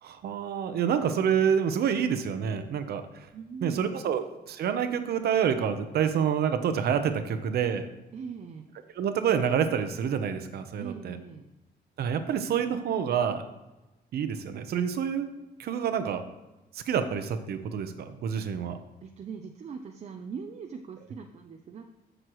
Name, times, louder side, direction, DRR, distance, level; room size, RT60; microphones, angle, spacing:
voice 1, 0.0-3.3 3.6-7.9 9.0-11.2 12.0-13.4 14.1-15.3 15.6-16.2 16.7-18.8, right 8 dB, 65° right, 9 dB, 0.9 m, -28 dB
voice 2, 3.3-3.9 8.1-8.7 10.8-11.5 19.0-21.8, right 6 dB, 40° right, 5 dB, 0.6 m, -41 dB
14.0 x 6.5 x 3.1 m, 1.0 s
cardioid pair, 155°, 17 cm